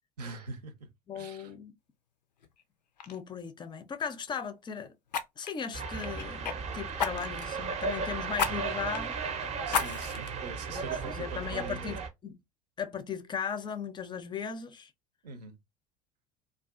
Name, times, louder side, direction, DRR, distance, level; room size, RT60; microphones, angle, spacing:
voice 1, 0.2-1.5 9.7-12.0 15.2-15.6, right 4 dB, 75° right, 0.7 m, -43 dB
voice 2, 1.1-1.7 3.1-4.9 5.4-9.2 10.7-12.4 12.8-14.9, left 7 dB, 20° left, 0.4 m, -37 dB
Fire, 2.4-2.6 3.0-3.2 5.1-6.6 7.0-7.5 8.4-8.5 8.9-9.0 9.7-10.3 10.8-10.9, left 6 dB, 85° left, 0.4 m, -32 dB
sound 1, 5.7-12.1, right 5 dB, 35° right, 0.6 m, -35 dB
2.3 x 2.3 x 2.3 m
figure-of-eight pair, 70°, 21 cm